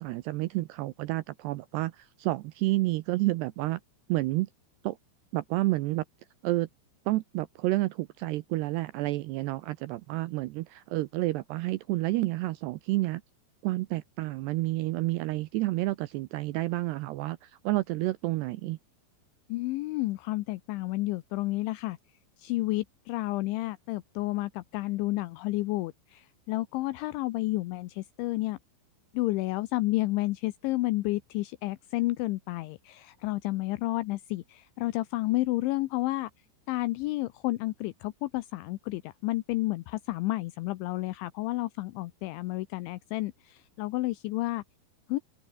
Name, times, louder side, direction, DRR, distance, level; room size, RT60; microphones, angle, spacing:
voice 1, 0.0-3.8 4.1-4.5 4.8-5.0 5.3-6.0 6.4-6.7 7.1-13.2 13.6-18.8, right 18 dB, 85° right, 2.4 m, -30 dB
voice 2, 19.5-22.0 22.4-28.6 29.1-36.3 36.7-44.6 45.1-45.2, left 19 dB, 80° left, 3.1 m, -31 dB
open air
omnidirectional pair, 5.6 m